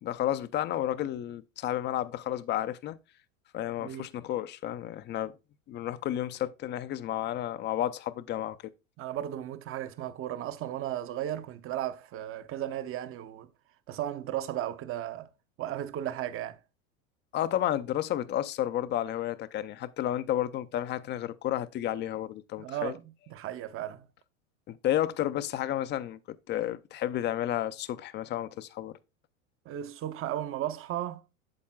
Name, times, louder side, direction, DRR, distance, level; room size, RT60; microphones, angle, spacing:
voice 1, 0.0-3.0 3.5-5.3 5.7-8.7 17.3-22.9 24.7-29.0, left 12 dB, 25° left, 0.5 m, -31 dB
voice 2, 9.0-13.5 13.9-15.3 15.6-16.6 22.6-24.1 29.7-31.2, right 12 dB, 30° right, 0.7 m, -35 dB
8.7 x 7.2 x 2.2 m
hypercardioid pair, 95°, 41 cm